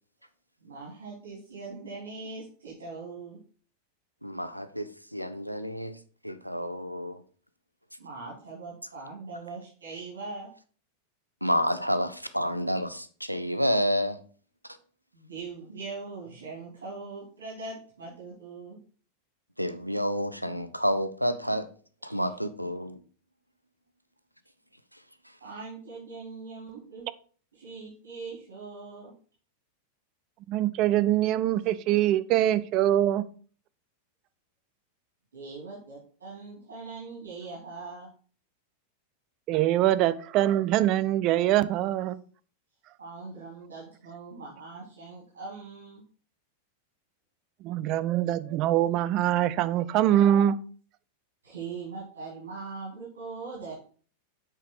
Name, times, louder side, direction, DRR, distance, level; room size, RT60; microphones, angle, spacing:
voice 1, 0.6-3.4 8.0-10.5 15.1-18.8 22.1-22.4 25.4-27.1 27.5-29.1 35.3-38.1 43.0-46.0 51.4-53.7, right 4 dB, 65° right, 2.8 m, -41 dB
voice 2, 4.2-5.9 6.2-7.2 11.4-14.2 19.6-21.7 22.0-23.0, equal, 90° right, 0.6 m, -29 dB
voice 3, 30.5-33.3 39.5-42.2 47.6-50.6, right 12 dB, 40° right, 0.4 m, -24 dB
7.4 x 5.1 x 4.6 m
figure-of-eight pair, 90°, 0 cm